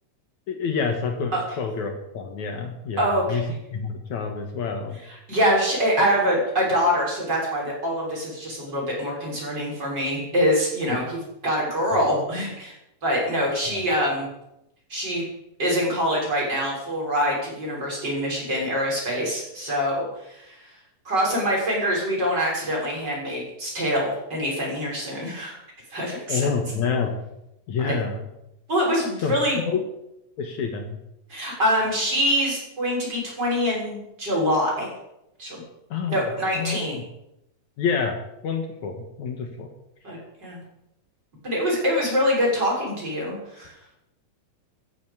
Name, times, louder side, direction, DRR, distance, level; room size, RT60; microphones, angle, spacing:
voice 1, 0.5-3.4 3.7-5.0 10.9-11.0 11.9-12.0 13.7-13.8 26.3-27.1 27.7-28.3 29.2-29.8 30.4-31.0 35.9-36.2 36.5-37.0 37.8-39.7, left 5 dB, 65° left, 4 dB, 2.7 m, -28 dB
voice 2, 3.0-3.4 5.3-11.2 11.4-12.7 13.0-14.3 14.9-15.2 15.6-20.7 21.1-25.6 25.9-26.4 27.8-27.9 28.7-29.6 31.3-34.9 35.4-35.6 36.1-37.0 40.0-40.6 41.4-43.7, equal, 30° right, -3 dB, 7.1 m, -24 dB
15.0 x 11.0 x 8.2 m, 0.85 s
omnidirectional pair, 3.9 m